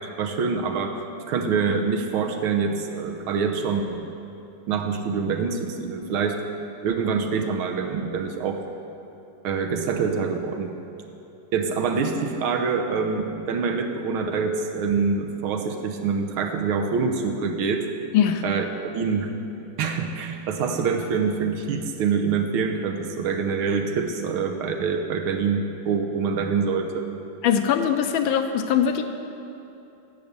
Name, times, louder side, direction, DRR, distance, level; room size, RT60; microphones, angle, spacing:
voice 1, 0.2-1.0 1.3-4.1 4.7-6.4 6.8-8.6 9.4-10.8 11.5-17.9 18.4-19.3 19.8-27.1, right 5 dB, 85° right, 4 dB, 1.7 m, -25 dB
voice 2, 27.4-29.0, left 8 dB, 75° left, 7 dB, 1.3 m, -21 dB
10.5 x 7.0 x 8.0 m, 2.9 s
omnidirectional pair, 2.3 m